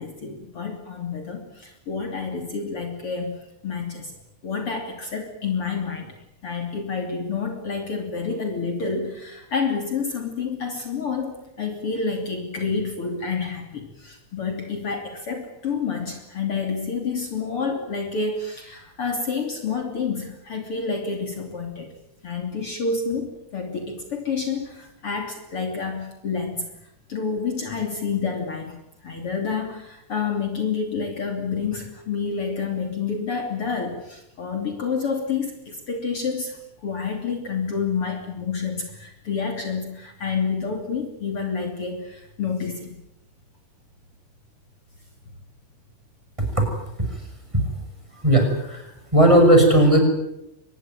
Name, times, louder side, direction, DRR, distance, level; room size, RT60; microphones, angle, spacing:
voice 1, 0.0-4.1 4.4-6.1 6.4-21.9 22.2-26.7 27.1-28.8 29.0-43.0, left 5 dB, 45° left, 4 dB, 3.7 m, -29 dB
voice 2, 48.2-50.0, right 1 dB, 10° right, 4 dB, 6.2 m, -16 dB
24.5 x 21.0 x 9.1 m, 0.83 s
omnidirectional pair, 3.5 m